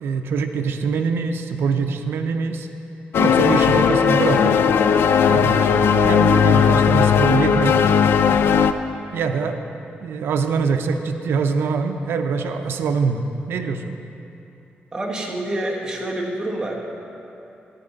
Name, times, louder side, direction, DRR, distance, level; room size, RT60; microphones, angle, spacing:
voice 1, 0.0-2.7 3.2-4.5 5.3-5.7 6.0-7.8 9.1-9.6 10.0-13.9, right 5 dB, 85° right, 6 dB, 0.6 m, -24 dB
sound 1, 3.1-8.7, left 7 dB, 80° left, 0.4 m, -16 dB
voice 2, 14.9-16.8, right 1 dB, 20° right, -2 dB, 1.4 m, -27 dB
11.0 x 9.5 x 3.9 m, 2.8 s
wide cardioid pair, 125°, 4 cm